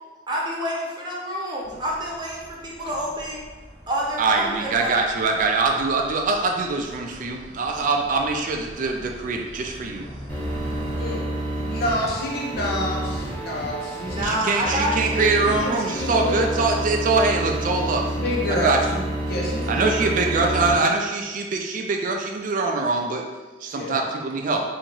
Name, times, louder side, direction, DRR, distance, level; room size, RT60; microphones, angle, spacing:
voice 1, 0.3-3.4 3.9-4.9 14.1-15.3, equal, 25° right, -3 dB, 0.8 m, -28 dB
sound 1, 1.6-11.0, equal, 30° left, 1.3 m, -43 dB
voice 2, 4.2-10.1 14.2-18.1 18.6-19.0 19.7-23.2 23.6-24.6, right 3 dB, 50° right, 2 dB, 0.4 m, -23 dB
sound 2, 10.3-20.7, right 1 dB, 10° left, 0.8 m, -29 dB
voice 3, 11.0-11.3 11.6-14.4 15.4-16.7 18.1-19.9 23.7-24.0, left 1 dB, 60° left, -2 dB, 0.8 m, -28 dB
2.8 x 2.7 x 4.4 m, 1.2 s
head